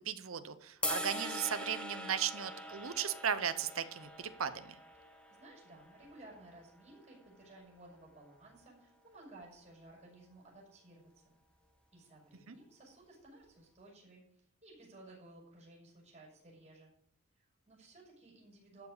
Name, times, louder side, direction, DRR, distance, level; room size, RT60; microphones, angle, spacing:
voice 1, 0.0-4.7 12.5-12.6, right 8 dB, 75° right, 11 dB, 0.8 m, -36 dB
sound 1, 0.8-7.1, equal, 5° left, 1.6 m, -43 dB
voice 2, 5.4-11.4 11.9-16.9 17.3-18.9, right 2 dB, 30° right, -4 dB, 6.1 m, -57 dB
12.5 x 7.2 x 6.7 m, 0.71 s
head